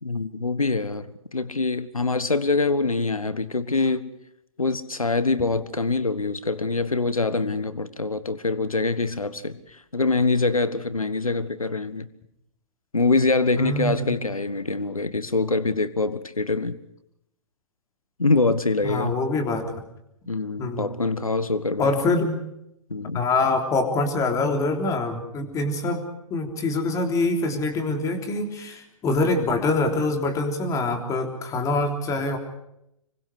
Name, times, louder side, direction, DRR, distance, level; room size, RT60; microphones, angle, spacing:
voice 1, 0.0-4.1 4.6-12.1 12.9-16.8 18.2-19.2 20.3-22.0 22.9-23.2, left 3 dB, 85° left, 1.5 m, -24 dB
voice 2, 13.6-14.1 18.8-19.8 20.6-20.9 21.8-22.4 23.1-26.0 26.3-32.4, left 2 dB, 20° left, 3.5 m, -25 dB
26.5 x 24.0 x 4.9 m
figure-of-eight pair, 120°, 18 cm